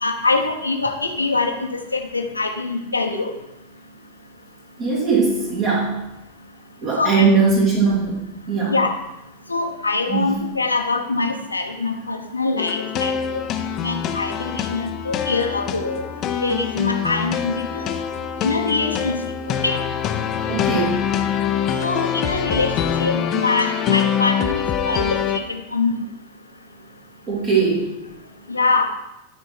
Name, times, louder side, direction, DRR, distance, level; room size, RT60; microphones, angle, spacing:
voice 1, 0.0-3.3 7.0-7.3 8.7-8.9 9.5-13.4 13.8-16.0 16.4-17.9 18.4-19.2 19.5-19.8 21.8-25.2 25.5-25.9 28.5-28.9, left 3 dB, 80° left, 3 dB, 1.0 m, -23 dB
voice 2, 4.8-6.0 6.8-8.8 10.1-10.3 20.5-21.1 27.3-28.0, right 4 dB, 40° right, -6 dB, 2.8 m, -20 dB
sound 1, 12.6-25.4, left 8 dB, 30° left, 0.7 m, -24 dB
12.5 x 4.5 x 4.5 m, 0.93 s
figure-of-eight pair, 90°, 0 cm